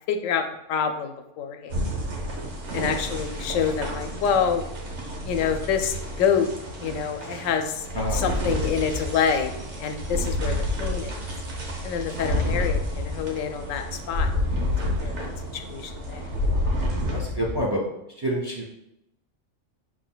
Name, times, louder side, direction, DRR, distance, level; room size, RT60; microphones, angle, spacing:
voice 1, 0.1-0.4 0.7-1.7 2.7-4.6 5.2-6.5 6.8-7.9 8.1-9.5 9.8-11.2 11.8-14.5 15.0-16.2, left 7 dB, 85° left, 6 dB, 1.0 m, -27 dB
sound 1, 1.7-17.6, left 1 dB, 65° right, 1.2 m, -29 dB
voice 2, 17.1-17.8 18.2-18.7, equal, 30° right, -2 dB, 0.4 m, -27 dB
6.0 x 3.8 x 2.2 m, 0.85 s
omnidirectional pair, 1.3 m